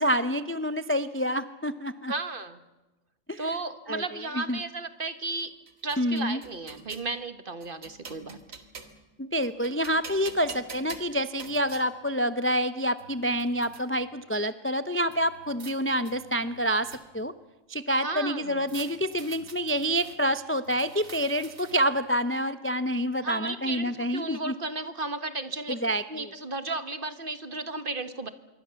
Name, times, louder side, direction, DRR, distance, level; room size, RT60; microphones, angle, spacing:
voice 1, 0.0-2.1 3.3-3.4 3.9-4.0 4.3-4.6 6.0-6.4 9.2-17.3 17.7-24.5 25.7-26.0, equal, 15° left, 12 dB, 0.6 m, -27 dB
voice 2, 2.1-2.6 3.4-5.5 5.8-8.4 18.0-18.7 23.2-25.8 26.1-28.3, right 3 dB, 45° right, 11 dB, 1.5 m, -34 dB
sound 1, 5.4-7.1 7.6-9.1 9.4-11.9 12.6-12.7 13.0-13.8 15.1-15.7 16.0-17.3 18.7-20.2 20.6-22.0, right 4 dB, 90° right, 2.4 m, -46 dB
26.0 x 23.0 x 7.0 m, 1.1 s
omnidirectional pair, 1.3 m